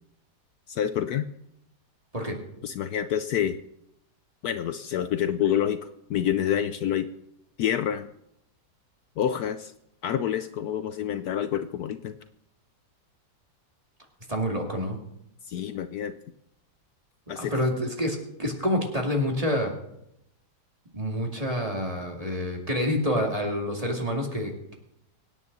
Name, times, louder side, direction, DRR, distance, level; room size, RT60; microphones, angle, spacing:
voice 1, 0.7-1.3 2.6-3.6 4.4-5.8 6.1-7.1 7.6-8.1 9.2-9.7 10.0-12.1 15.5-16.1 17.3-17.5, left 10 dB, 70° left, 10 dB, 1.1 m, -27 dB
voice 2, 14.3-15.0 17.4-19.7 20.9-24.7, equal, 20° right, 1 dB, 2.5 m, -27 dB
24.5 x 9.5 x 4.1 m, 0.80 s
omnidirectional pair, 1.8 m